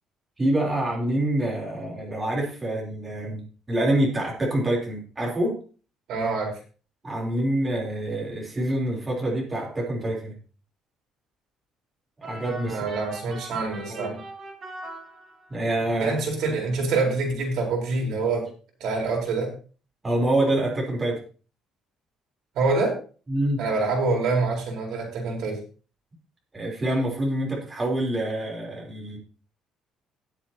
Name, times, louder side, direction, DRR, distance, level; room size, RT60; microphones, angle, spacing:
voice 1, 0.4-5.5 7.0-10.4 12.2-12.8 13.9-14.2 15.5-16.1 20.0-21.2 23.3-23.6 26.5-29.2, right 1 dB, 15° right, -2 dB, 3.5 m, -26 dB
voice 2, 6.1-6.5 12.7-14.1 16.0-18.5 18.8-19.5 22.5-23.0 23.6-25.6, right 3 dB, 65° right, 0 dB, 4.2 m, -26 dB
sound 1, 12.2-15.7, right 2 dB, 30° right, 2.6 m, -41 dB
18.0 x 7.5 x 2.9 m, 0.38 s
cardioid pair, 150°, 0 cm